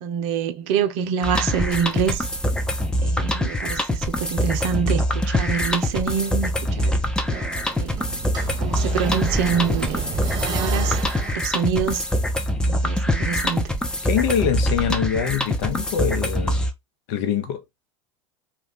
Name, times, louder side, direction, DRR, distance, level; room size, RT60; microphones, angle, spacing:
voice 1, 0.0-2.3 3.0-7.0 7.8-8.2 8.6-11.0 11.3-12.0 12.7-13.7, right 7 dB, 60° right, 0.6 m, -26 dB
sound 1, 1.2-16.7, equal, 5° left, 0.5 m, -24 dB
sound 2, 2.0-4.1 4.4-11.4, right 5 dB, 25° right, 0.9 m, -33 dB
voice 2, 14.0-16.6 17.1-17.6, left 8 dB, 60° left, 0.8 m, -24 dB
2.3 x 2.3 x 3.6 m
hypercardioid pair, 85°, 16 cm